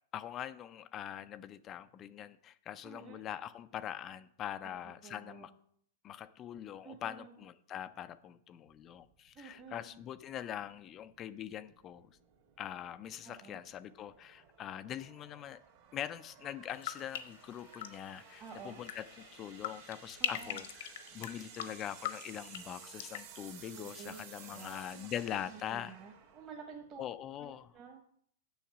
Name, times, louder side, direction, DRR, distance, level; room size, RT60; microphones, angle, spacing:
voice 1, 0.1-5.5 6.0-12.2 12.6-15.6 15.9-19.1 19.3-26.0 27.0-27.7, left 10 dB, 30° left, 0.4 m, -43 dB
voice 2, 2.8-3.3 4.6-4.7 5.0-5.5 6.8-7.3 9.3-9.9 13.2-13.6 18.4-18.8 20.2-20.6 23.7-27.0 27.4-28.0, right 6 dB, 30° right, 1.4 m, -51 dB
sound 1, 8.7-27.8, right 8 dB, 55° right, 2.1 m, -56 dB
sound 2, 16.7-24.6 24.9-25.4, left 10 dB, 65° left, 1.0 m, -43 dB
7.2 x 7.1 x 6.0 m
hypercardioid pair, 130°, 0 cm